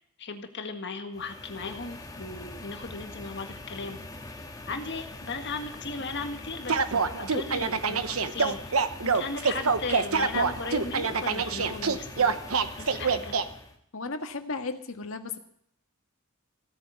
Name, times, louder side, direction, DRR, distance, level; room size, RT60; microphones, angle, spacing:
voice 1, 0.2-4.0 4.7-12.5 12.8-13.3, left 4 dB, 50° left, 6 dB, 1.7 m, -37 dB
sound 1, 1.1-13.8, left 2 dB, 15° left, 1.7 m, -43 dB
sound 2, 6.7-13.4, right 5 dB, 75° right, 1.0 m, -26 dB
voice 2, 13.9-15.4, left 3 dB, 70° left, 6 dB, 1.6 m, -35 dB
16.5 x 9.4 x 8.3 m, 0.71 s
head